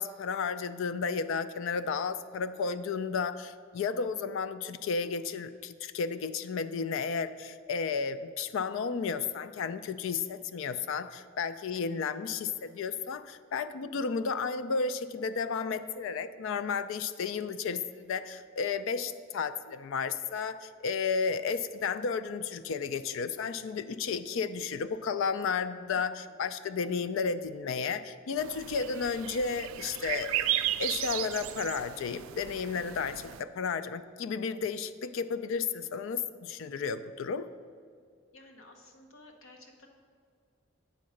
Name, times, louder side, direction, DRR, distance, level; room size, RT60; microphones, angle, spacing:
voice 1, 0.0-30.5 30.8-37.5, left 5 dB, 70° left, 13 dB, 0.4 m, -33 dB
voice 2, 25.9-26.4 38.3-39.9, left 2 dB, 85° left, 3 dB, 1.0 m, -55 dB
sound 1, 28.4-33.4, right 13 dB, 70° right, 0.3 m, -35 dB
8.4 x 3.8 x 6.4 m, 2.1 s
head